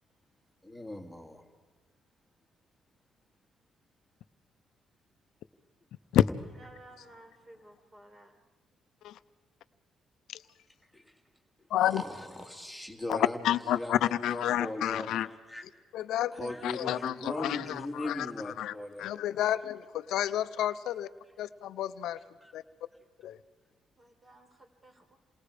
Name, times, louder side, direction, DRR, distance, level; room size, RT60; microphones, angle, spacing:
voice 1, 0.6-1.4 10.9-11.0 11.8-15.6 16.3-19.1 22.4-22.5, left 1 dB, ahead, 4 dB, 2.3 m, -39 dB
voice 2, 6.5-8.4 24.0-25.2, right 1 dB, 30° right, 4 dB, 4.7 m, -55 dB
voice 3, 11.7-12.0 13.1-15.3 15.9-21.1 21.4-22.2 22.5-22.6 23.2-23.4, left 12 dB, 80° left, 13 dB, 0.6 m, -30 dB
28.0 x 21.0 x 5.0 m, 1.4 s
cardioid pair, 90°, 0 cm